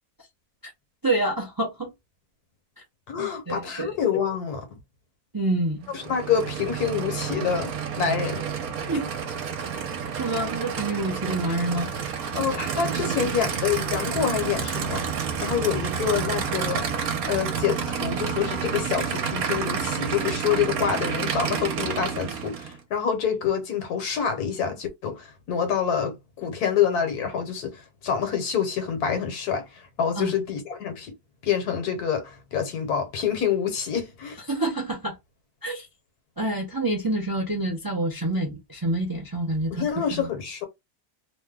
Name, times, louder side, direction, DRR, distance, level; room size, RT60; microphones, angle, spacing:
voice 1, 1.0-1.9 3.2-4.0 5.3-5.9 8.9-9.1 9.7-9.8 10.2-11.9 30.1-30.3 34.5-35.2 35.6-35.9 36.4-39.8 40.1-40.3, right 2 dB, 30° right, 0.4 m, -27 dB
voice 2, 3.1-4.6 5.9-7.7 8.0-8.4 12.3-16.8 17.3-31.1 31.4-34.4 39.7-40.7, left 7 dB, 75° left, 1.4 m, -27 dB
Aircraft / Idling, 5.8-22.8, right 7 dB, 70° right, 1.2 m, -29 dB
3.0 x 2.1 x 3.5 m
omnidirectional pair, 1.7 m